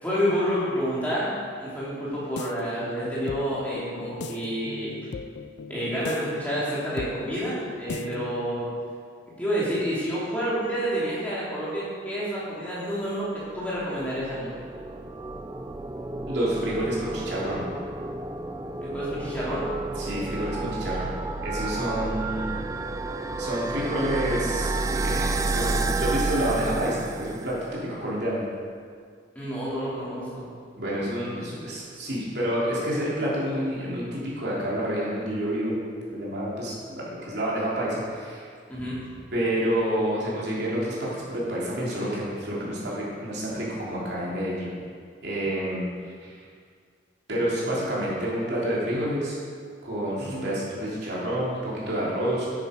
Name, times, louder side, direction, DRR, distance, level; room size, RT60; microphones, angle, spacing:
voice 1, 0.0-5.0 5.7-8.7 9.4-14.5 18.8-19.6 29.3-30.5 38.7-39.2 50.2-50.5, equal, 10° left, -9 dB, 3.0 m, -29 dB
sound 1, 2.0-8.6, left 4 dB, 60° left, 0.4 m, -39 dB
sound 2, 13.6-27.8, right 3 dB, 15° right, 0.4 m, -31 dB
voice 2, 16.3-17.6 19.9-21.1 21.4-22.5 23.4-28.4 30.8-35.8 36.1-38.4 39.3-44.7 45.2-45.9 46.2-46.4 47.3-49.3 49.8-52.5, equal, 60° right, -7 dB, 3.3 m, -28 dB
10.5 x 9.7 x 5.2 m, 2.1 s
head